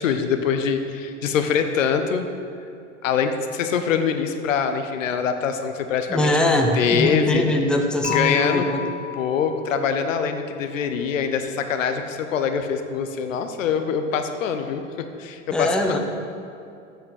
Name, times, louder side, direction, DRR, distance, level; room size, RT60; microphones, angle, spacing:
voice 1, 0.0-2.3 3.0-7.5 8.1-8.7 9.2-16.0, left 6 dB, 75° left, 7 dB, 0.8 m, -24 dB
voice 2, 6.1-8.8 15.5-16.0, left 1 dB, ahead, 3 dB, 0.8 m, -22 dB
Dishes pots and pans / Chink clink, 8.0-10.2, left 9 dB, 20° left, 1.8 m, -31 dB
7.7 x 5.8 x 6.4 m, 2.5 s
hypercardioid pair, 85°, 39 cm